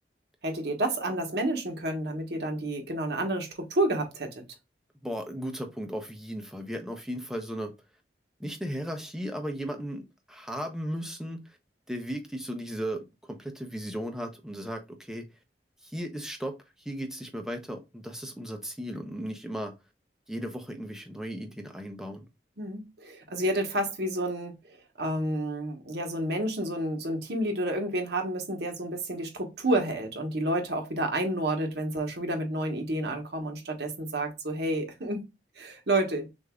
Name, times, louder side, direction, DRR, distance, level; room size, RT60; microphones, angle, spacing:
voice 1, 0.4-4.4 22.6-24.5 25.0-35.2 35.6-36.3, right 1 dB, 70° right, 1.3 m, -30 dB
voice 2, 5.0-7.7 8.4-11.6 11.9-15.2 15.8-19.7 20.3-22.3, equal, 5° right, 0.7 m, -36 dB
6.4 x 2.7 x 2.4 m
head